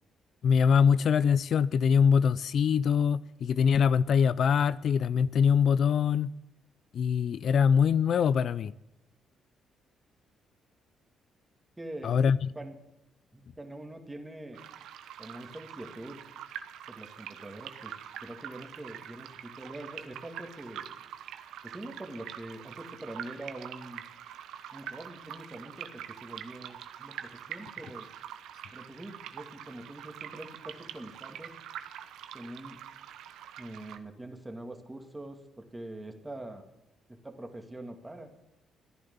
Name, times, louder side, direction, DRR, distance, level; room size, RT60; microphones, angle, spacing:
voice 1, 0.4-6.3 6.9-8.7 12.0-12.5, left 7 dB, 60° left, 0.4 m, -23 dB
voice 2, 11.8-12.2 12.5-12.8 13.3-14.6 15.2-16.2 16.9-18.0 18.2-20.9 21.6-24.0 24.7-28.1 28.7-31.6 32.3-32.8 33.6-36.7 37.1-38.3, right 1 dB, 15° right, 2.3 m, -44 dB
sound 1, 14.5-34.0, right 10 dB, 85° right, 1.1 m, -45 dB
14.5 x 10.5 x 7.1 m
cardioid pair, 90°, 0 cm